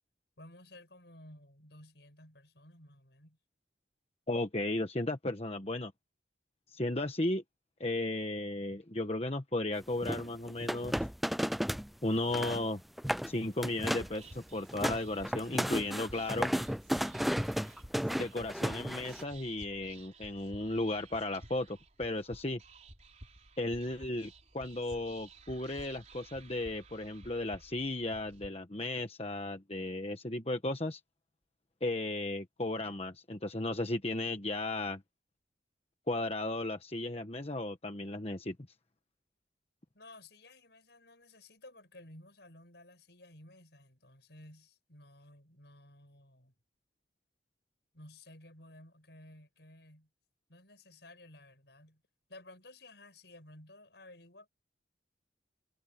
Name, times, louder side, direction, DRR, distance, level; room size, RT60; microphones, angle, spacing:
voice 1, 0.4-3.4 39.9-46.6 47.9-50.1 50.5-52.0 52.3-54.5, left 1 dB, 60° left, 6.9 m, -55 dB
voice 2, 4.3-5.9 6.7-7.4 7.8-11.1 12.0-12.8 13.3-16.5 18.1-22.6 23.6-31.0 31.8-35.0 36.1-38.6, left 2 dB, 30° left, 1.3 m, -35 dB
sound 1, 10.0-11.9 12.2-12.6 13.0-13.3 13.6-14.2 14.5-19.2, equal, ahead, 0.3 m, -33 dB
Whispering, 13.8-28.5, right 2 dB, 40° right, 4.3 m, -54 dB
head